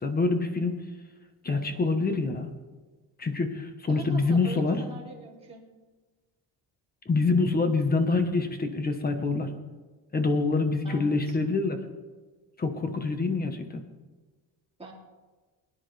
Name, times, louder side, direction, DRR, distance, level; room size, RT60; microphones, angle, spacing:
voice 1, 0.0-0.7 1.4-2.5 3.2-4.8 7.1-9.5 10.1-11.8 12.6-13.8, left 3 dB, 20° left, 6 dB, 1.3 m, -26 dB
voice 2, 3.9-5.6 10.8-11.4 14.8-14.9, right 3 dB, 15° right, -3 dB, 2.8 m, -42 dB
21.5 x 10.5 x 3.4 m, 1.3 s
cardioid pair, 150°, 41 cm